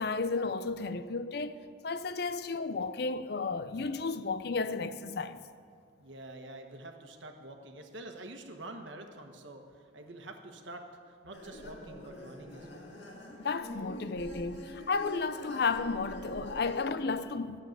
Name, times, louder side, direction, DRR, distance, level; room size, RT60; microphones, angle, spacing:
voice 1, 0.0-5.4 13.4-17.6, left 4 dB, 55° left, 0.5 m, -33 dB
voice 2, 6.0-12.9, right 2 dB, 85° right, 1.3 m, -47 dB
sound 1, 11.3-16.9, left 1 dB, 75° left, 1.9 m, -45 dB
12.0 x 7.4 x 8.8 m
head